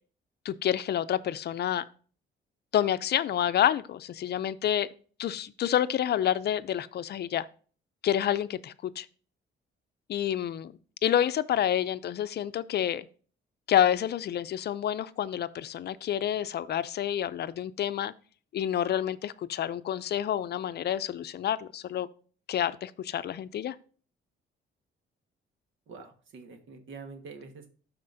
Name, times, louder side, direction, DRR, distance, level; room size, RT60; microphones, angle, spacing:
voice 1, 0.4-1.9 2.7-4.9 5.2-7.5 8.0-9.1 10.1-10.7 11.0-13.1 13.7-18.1 18.5-22.1 22.5-23.8, left 10 dB, 55° left, 0.5 m, -28 dB
voice 2, 25.9-27.7, right 4 dB, 75° right, 1.5 m, -46 dB
13.0 x 4.3 x 2.6 m
cardioid pair, 90°, 20 cm